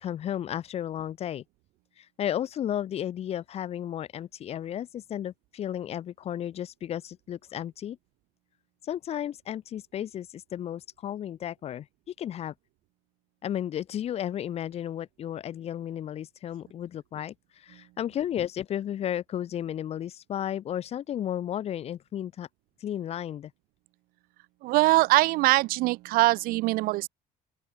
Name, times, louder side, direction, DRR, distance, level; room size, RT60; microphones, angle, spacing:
voice 1, 0.0-1.4 2.0-8.0 8.8-12.5 13.4-22.5 22.8-23.5, left 10 dB, 40° left, 0.8 m, -33 dB
voice 2, 24.6-27.1, right 20 dB, 70° right, 0.5 m, -22 dB
open air
cardioid pair, 130°, 15 cm